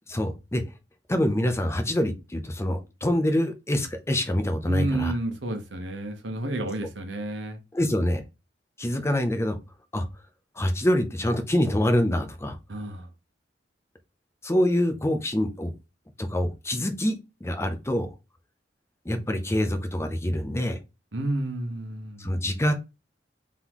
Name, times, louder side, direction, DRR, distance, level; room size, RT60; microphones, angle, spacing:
voice 1, 0.1-0.6 1.1-5.1 7.7-8.2 8.8-9.6 9.9-10.1 10.6-12.6 14.4-15.7 16.2-18.1 19.0-20.8 22.2-22.7, left 1 dB, 15° left, 0.6 m, -25 dB
voice 2, 4.7-7.6 12.7-13.1 21.1-22.3, right 1 dB, 80° right, 1.1 m, -30 dB
3.8 x 3.7 x 3.0 m
head